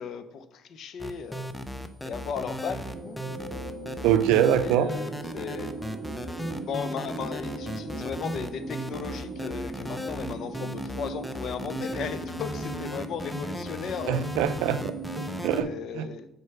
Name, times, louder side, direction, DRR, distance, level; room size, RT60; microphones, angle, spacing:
voice 1, 0.0-1.5 2.0-3.2 4.6-5.7 6.6-14.3 15.5-16.3, left 6 dB, 60° left, 11 dB, 0.7 m, -36 dB
sound 1, 1.0-15.6, equal, 5° left, 0.6 m, -36 dB
sound 2, 2.9-15.5, right 3 dB, 25° right, 1.6 m, -39 dB
voice 2, 4.0-4.9 14.1-14.9 15.4-16.1, right 10 dB, 90° right, 12 dB, 0.5 m, -23 dB
6.4 x 4.5 x 5.9 m, 0.87 s
cardioid pair, 110°, 0 cm